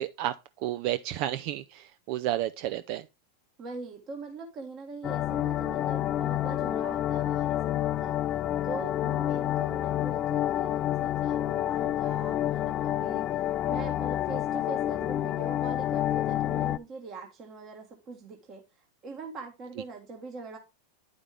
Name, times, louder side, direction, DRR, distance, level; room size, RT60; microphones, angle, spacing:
voice 1, 0.0-3.1, right 13 dB, 55° right, 0.4 m, -31 dB
voice 2, 3.6-8.2 8.6-20.6, right 3 dB, 35° right, 1.5 m, -42 dB
sound 1, 5.0-16.8, left 13 dB, 40° left, 0.3 m, -29 dB
10.0 x 5.1 x 3.4 m
hypercardioid pair, 110°, 0 cm